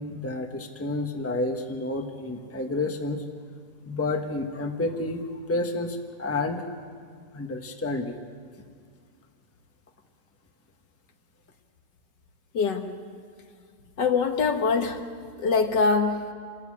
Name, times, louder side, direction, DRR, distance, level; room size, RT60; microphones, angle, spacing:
voice 1, 0.0-3.2 3.9-6.6 7.3-8.2, left 2 dB, 10° left, 4 dB, 1.1 m, -30 dB
voice 2, 12.5-12.9 14.0-15.0 15.4-16.2, left 4 dB, 70° left, 5 dB, 2.0 m, -23 dB
27.5 x 14.0 x 8.6 m, 2.1 s
omnidirectional pair, 2.0 m